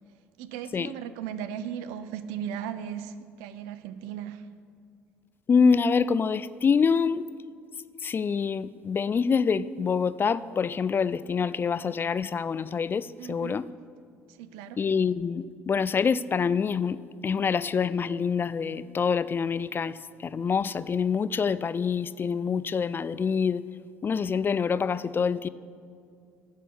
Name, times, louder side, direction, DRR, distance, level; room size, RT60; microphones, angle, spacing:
voice 1, 0.4-4.5 13.2-13.6 14.4-14.8, right 9 dB, 75° right, 12 dB, 0.6 m, -37 dB
voice 2, 5.5-7.3 8.0-13.7 14.8-23.6 24.0-25.5, left 6 dB, 35° left, 17 dB, 0.4 m, -26 dB
9.9 x 6.5 x 8.2 m, 2.3 s
hypercardioid pair, 60°, 7 cm